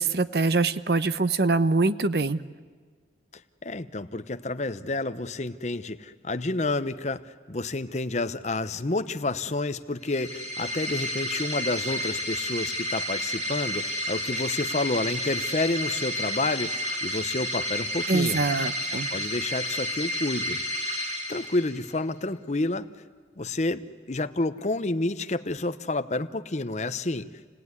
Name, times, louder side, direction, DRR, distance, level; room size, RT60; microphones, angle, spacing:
voice 1, 0.0-2.4 18.1-19.1, right 3 dB, 65° right, 13 dB, 0.8 m, -24 dB
voice 2, 3.6-7.2 7.5-18.4 19.1-20.6 21.3-22.9 23.4-27.3, left 2 dB, 40° left, 11 dB, 0.8 m, -29 dB
sound 1, 10.0-22.0, left 1 dB, 40° right, 3.8 m, -31 dB
29.0 x 17.5 x 9.6 m, 1.5 s
head